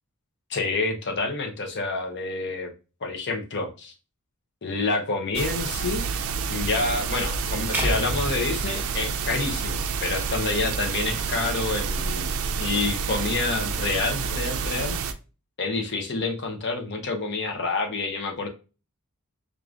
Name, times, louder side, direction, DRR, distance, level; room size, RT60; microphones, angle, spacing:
voice 1, 0.5-2.7 3.0-3.9 4.6-6.0 6.5-15.0 15.6-18.5, left 3 dB, 50° left, 0.7 m, -28 dB
sound 1, 5.3-15.1, right 6 dB, 65° right, 0.4 m, -29 dB
sound 2, 7.7-10.0, right 1 dB, 10° right, 0.7 m, -31 dB
4.7 x 2.5 x 2.4 m
head